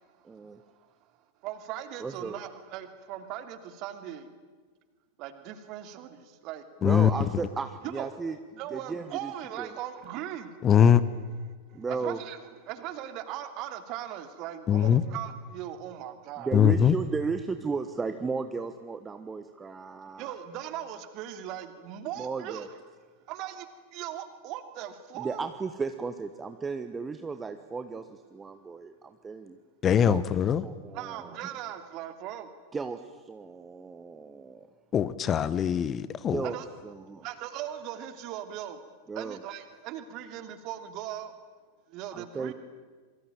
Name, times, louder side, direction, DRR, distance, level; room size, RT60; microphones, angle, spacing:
voice 1, 0.2-0.6 2.0-2.4 6.8-8.4 8.7-9.3 9.6-9.7 11.7-12.2 16.4-20.3 22.2-22.7 25.2-29.6 30.0-30.2 30.6-31.3 32.7-34.7 36.3-36.6 36.8-37.3 39.1-39.4 42.1-42.5, right 4 dB, 15° right, 9 dB, 1.3 m, -35 dB
voice 2, 1.4-4.3 5.2-6.6 7.0-7.2 7.8-8.1 8.6-10.5 11.4-12.4 12.7-16.5 20.1-22.8 23.3-23.7 23.9-25.4 30.9-32.5 36.4-36.7 37.2-38.8 39.1-41.3 41.9-42.5, right 11 dB, 40° right, 9 dB, 2.9 m, -39 dB
voice 3, 10.6-11.0 14.7-15.0 16.5-16.9 29.8-30.6 34.9-36.4, left 9 dB, 25° left, 16 dB, 1.0 m, -22 dB
27.5 x 24.0 x 9.0 m, 1.4 s
figure-of-eight pair, 90°, 0 cm